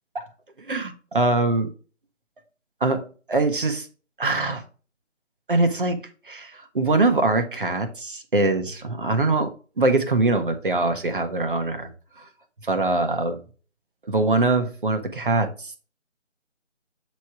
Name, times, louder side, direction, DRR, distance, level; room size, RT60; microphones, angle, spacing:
voice 1, 0.7-1.7 2.8-3.9 4.2-4.6 5.5-6.0 6.3-9.5 9.8-11.9 12.2-12.3 12.6-13.4 14.1-15.7, right 2 dB, 45° right, 6 dB, 1.1 m, -23 dB
8.1 x 3.2 x 4.8 m, 0.37 s
figure-of-eight pair, 160°, 37 cm